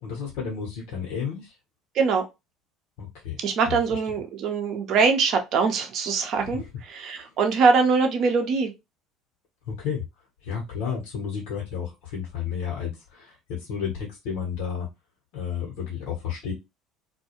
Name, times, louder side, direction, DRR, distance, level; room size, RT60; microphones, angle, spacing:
voice 1, 0.0-1.5 3.0-3.4 3.6-4.0 6.4-6.7 7.1-7.3 9.6-10.0 10.4-14.9 15.3-16.5, left 7 dB, 70° left, -2 dB, 0.9 m, -32 dB
voice 2, 3.4-6.6 6.9-8.7, right 5 dB, 55° right, 5 dB, 0.6 m, -22 dB
2.3 x 2.2 x 2.8 m, 0.23 s
hypercardioid pair, 70°, 0 cm